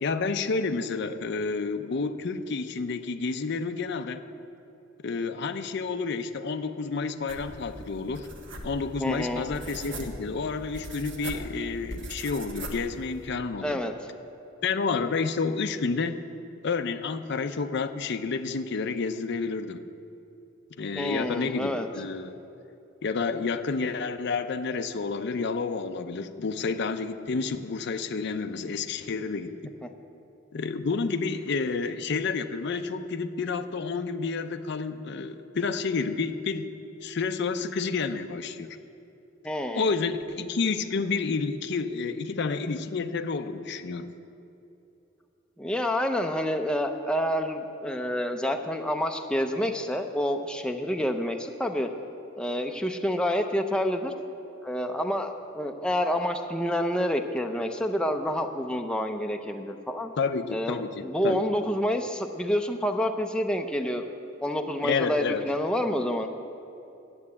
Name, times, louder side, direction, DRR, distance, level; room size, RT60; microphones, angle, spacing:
voice 1, 0.0-4.2 5.0-8.3 8.6-13.8 14.6-16.2 16.6-19.8 20.8-22.4 23.0-29.5 30.5-36.7 37.0-38.7 39.8-44.1 60.2-61.4 64.8-65.4, left 4 dB, 65° left, 9 dB, 0.5 m, -30 dB
sound 1, 7.3-13.3, right 1 dB, 65° right, 1.4 m, -41 dB
voice 2, 9.0-9.5 13.6-13.9 20.9-21.9 29.8-29.9 39.4-39.8 45.6-51.9 52.4-54.1 54.6-60.1 60.5-64.1 64.4-66.3, equal, 5° left, 5 dB, 0.5 m, -28 dB
9.7 x 7.9 x 8.4 m, 2.8 s
head